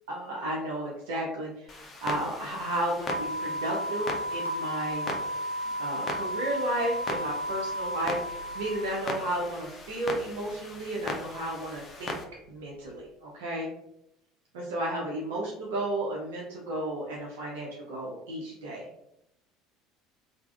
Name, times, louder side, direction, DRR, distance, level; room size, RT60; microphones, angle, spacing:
voice 1, 0.1-5.0 5.8-12.2 12.5-13.7 14.5-18.9, right 1 dB, 65° right, -3 dB, 0.5 m, -33 dB
Clock, 1.7-12.2, left 2 dB, 30° left, 0.5 m, -40 dB
sound 1, 3.1-9.4, equal, 85° left, 0.3 m, -33 dB
3.3 x 2.0 x 2.3 m, 0.78 s
figure-of-eight pair, 65°, 0 cm